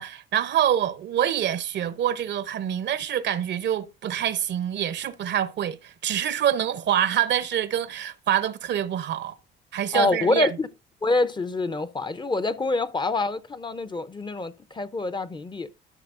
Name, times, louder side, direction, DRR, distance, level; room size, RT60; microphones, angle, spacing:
voice 1, 0.0-9.4 9.7-10.5, right 10 dB, 65° right, 0.7 m, -26 dB
voice 2, 9.9-10.7 11.0-15.7, left 3 dB, 25° left, 0.6 m, -26 dB
13.0 x 5.8 x 2.5 m
cardioid pair, 90°, 20 cm